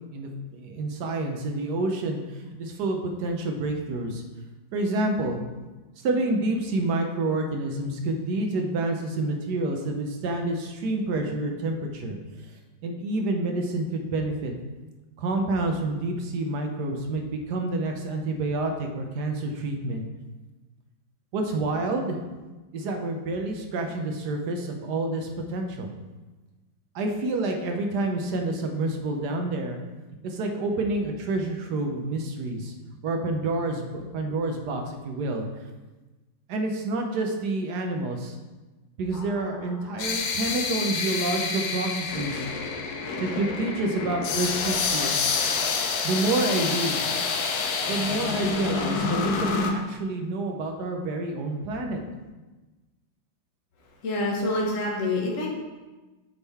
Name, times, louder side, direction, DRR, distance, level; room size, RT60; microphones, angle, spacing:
voice 1, 0.1-2.2 2.6-4.2 4.7-5.4 6.0-12.2 12.8-14.5 15.2-20.0 21.3-22.2 22.7-25.9 26.9-29.8 30.2-32.7 33.0-35.5 36.5-38.4 39.0-42.4 43.2-45.2 46.0-47.1 47.9-52.0, right 2 dB, 65° right, 4 dB, 1.3 m, -28 dB
sound 1, 39.1-49.7, left 5 dB, 65° left, 1.0 m, -28 dB
voice 2, 54.0-55.5, left 2 dB, 45° left, -2 dB, 1.4 m, -26 dB
8.0 x 3.7 x 4.2 m, 1.2 s
omnidirectional pair, 2.1 m